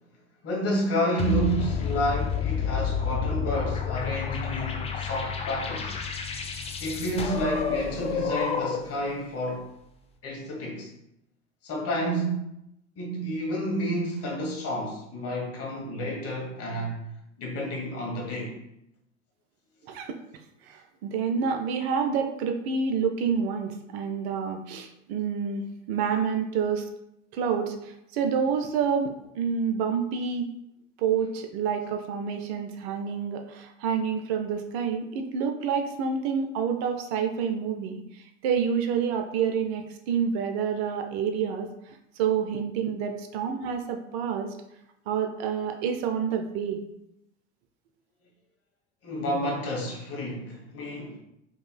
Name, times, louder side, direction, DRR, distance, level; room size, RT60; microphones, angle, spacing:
voice 1, 0.4-5.9 6.8-9.7 10.2-10.9 11.6-12.5 13.0-17.0 17.4-18.6 49.0-51.2, equal, 40° left, -2 dB, 1.3 m, -30 dB
sound 1, 1.2-9.0, left 6 dB, 15° left, 0.4 m, -30 dB
voice 2, 19.9-20.2 20.6-26.9 27.3-30.5 31.0-44.5 45.1-46.8, right 6 dB, 60° right, 5 dB, 0.5 m, -28 dB
4.5 x 2.8 x 2.2 m, 0.82 s
figure-of-eight pair, 75°, 37 cm